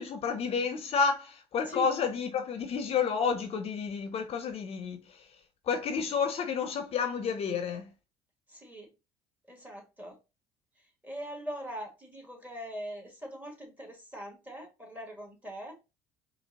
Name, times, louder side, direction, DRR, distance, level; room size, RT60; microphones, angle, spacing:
voice 1, 0.0-5.2 5.7-7.9, left 6 dB, 50° left, 0.6 m, -30 dB
voice 2, 8.5-8.9 9.5-10.2 10.8-15.8, equal, 10° right, 1.9 m, -42 dB
4.5 x 2.8 x 2.8 m
supercardioid pair, 80°, 14 cm